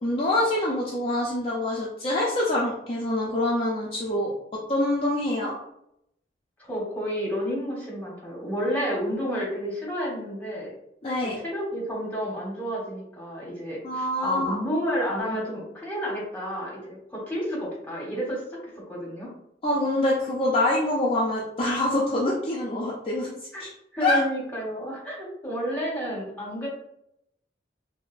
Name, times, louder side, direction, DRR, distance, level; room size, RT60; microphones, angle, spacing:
voice 1, 0.0-5.5 11.0-11.4 13.8-14.6 19.6-23.3 23.6-23.7 24.0-24.2, left 1 dB, 30° left, -5 dB, 0.5 m, -25 dB
voice 2, 6.6-10.7 11.2-18.4 18.9-19.3 23.5-23.6 23.9-26.7, equal, 10° left, -4 dB, 1.1 m, -30 dB
4.6 x 2.0 x 2.5 m, 0.77 s
head